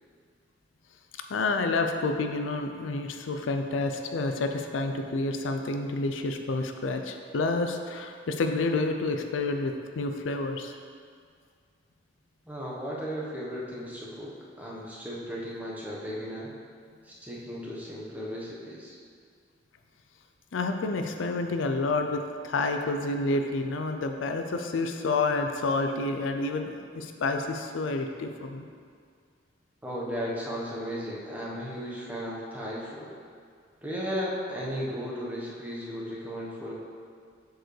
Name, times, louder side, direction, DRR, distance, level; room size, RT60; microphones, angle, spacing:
voice 1, 1.3-10.7 20.5-28.7, left 3 dB, 80° left, 5 dB, 0.4 m, -29 dB
voice 2, 12.4-16.5 17.0-18.9 29.8-33.1 33.8-36.7, equal, 10° right, -5 dB, 1.0 m, -35 dB
7.8 x 4.6 x 3.2 m, 2.1 s
head